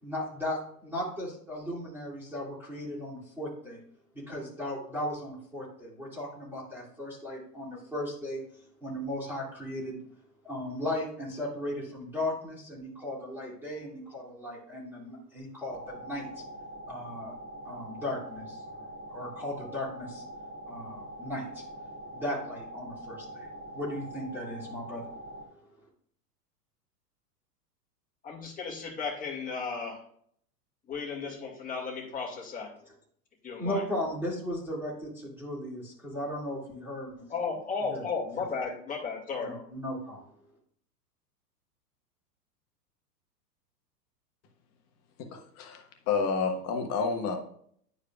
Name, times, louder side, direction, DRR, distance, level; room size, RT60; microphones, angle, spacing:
voice 1, 0.0-3.8 4.1-8.4 8.8-10.0 10.4-16.4 16.9-17.3 17.6-18.8 19.1-20.2 20.7-21.6 22.1-25.0 33.6-37.3 37.9-38.4 39.4-40.2, left 1 dB, 5° right, -8 dB, 2.3 m, -36 dB
sound 1, 15.7-25.4, equal, 35° right, 2.2 m, -44 dB
voice 2, 28.2-30.0 30.9-32.7 33.4-33.8 37.3-39.5, left 5 dB, 15° left, -2 dB, 2.2 m, -34 dB
voice 3, 45.3-47.4, left 5 dB, 30° left, 4 dB, 1.3 m, -30 dB
11.0 x 4.8 x 2.3 m, 0.64 s
figure-of-eight pair, 100°, 48 cm